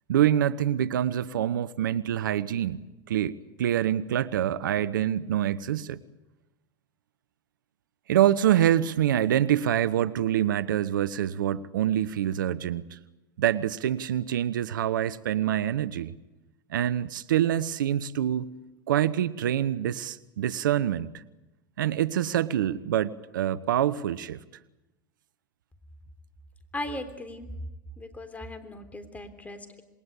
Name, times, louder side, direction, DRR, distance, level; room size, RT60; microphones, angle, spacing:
voice 1, 0.1-2.8 3.1-6.0 8.1-13.0 13.4-16.1 16.7-18.5 18.9-21.2 21.8-24.4, right 11 dB, 80° right, 17 dB, 0.9 m, -26 dB
voice 2, 26.7-27.5 28.0-29.8, left 1 dB, 15° left, 9 dB, 3.6 m, -38 dB
27.0 x 21.5 x 8.4 m, 1.0 s
hypercardioid pair, 95°, 11 cm